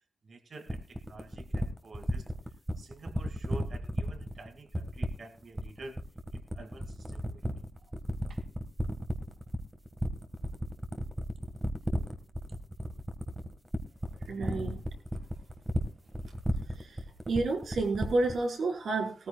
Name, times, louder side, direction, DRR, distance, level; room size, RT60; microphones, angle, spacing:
voice 1, 0.3-2.2 2.8-5.9 6.3-7.5 8.3-8.4, right 2 dB, 50° right, 8 dB, 2.5 m, -48 dB
sound 1, 0.7-18.4, equal, 10° right, 1.7 m, -33 dB
voice 2, 14.3-14.8 16.8-16.9 17.3-19.3, right 3 dB, 80° right, 1 dB, 5.1 m, -30 dB
20.5 x 14.5 x 2.4 m, 0.31 s
wide cardioid pair, 165°, 0 cm